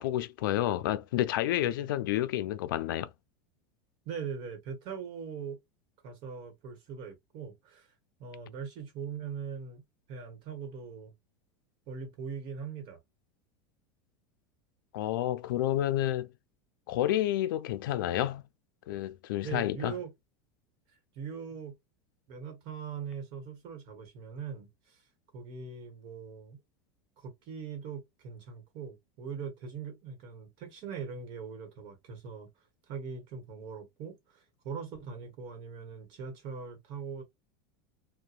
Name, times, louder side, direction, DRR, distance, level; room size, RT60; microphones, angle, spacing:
voice 1, 0.0-3.1 14.9-16.3 16.9-18.4 18.9-19.9, left 13 dB, 90° left, 0.4 m, -30 dB
voice 2, 4.0-5.6 6.0-7.9 8.2-9.8 10.1-11.1 11.9-13.0 19.4-20.1 21.1-21.8 22.3-25.0 25.3-26.6 27.2-32.5 32.9-37.2, right 6 dB, 50° right, 1.1 m, -41 dB
2.8 x 2.1 x 2.4 m
supercardioid pair, 145°, 11 cm